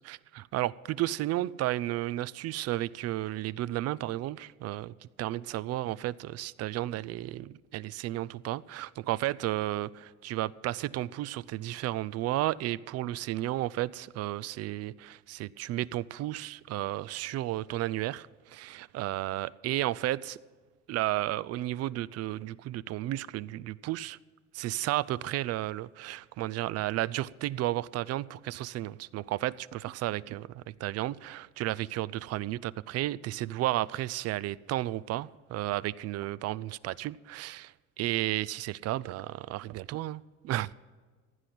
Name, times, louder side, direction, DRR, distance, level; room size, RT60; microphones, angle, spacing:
voice 1, 0.0-20.4 20.9-24.2 24.5-40.7, right 15 dB, 55° right, 0.5 m, -33 dB
16.0 x 10.0 x 6.0 m
cardioid pair, 125°, 31 cm